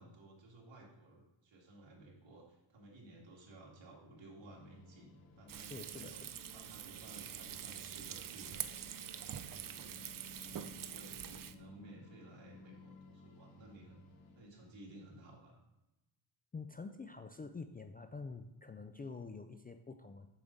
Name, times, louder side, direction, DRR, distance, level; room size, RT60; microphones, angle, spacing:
voice 1, 0.0-6.2 6.5-8.7 9.1-10.1 10.4-14.0 14.3-15.6, right 2 dB, 65° right, -2 dB, 2.5 m, -56 dB
sound 1, 4.5-14.5, left 3 dB, 90° left, 1.1 m, -58 dB
Frying (food), 5.5-11.5, right 10 dB, 45° right, 0.5 m, -45 dB
voice 2, 5.6-6.3 16.5-20.3, left 4 dB, 20° left, 7 dB, 0.3 m, -47 dB
7.0 x 6.5 x 4.0 m, 0.97 s
cardioid pair, 95°, 47 cm